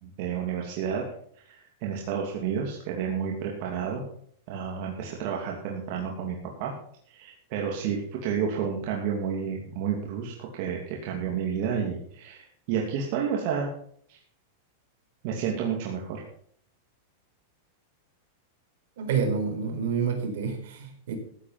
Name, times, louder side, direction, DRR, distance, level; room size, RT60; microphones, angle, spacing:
voice 1, 0.0-1.0 1.4-4.0 4.5-6.7 7.1-13.7 14.1-14.2 15.2-16.2, right 7 dB, 50° right, -1 dB, 2.7 m, -30 dB
voice 2, 19.0-21.1, right 6 dB, 70° right, 3 dB, 4.4 m, -28 dB
14.5 x 8.8 x 5.9 m, 0.63 s
supercardioid pair, 145°, 0 cm